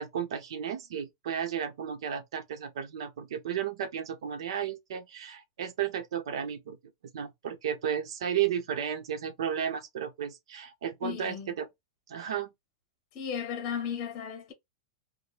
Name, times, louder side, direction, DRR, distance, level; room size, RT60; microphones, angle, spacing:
voice 1, 0.0-6.8 7.1-11.7 12.1-12.5, right 9 dB, 70° right, 0.9 m, -33 dB
voice 2, 11.0-11.5 13.1-14.5, left 7 dB, 25° left, 0.8 m, -35 dB
4.9 x 2.2 x 2.4 m
supercardioid pair, 180°, 3 cm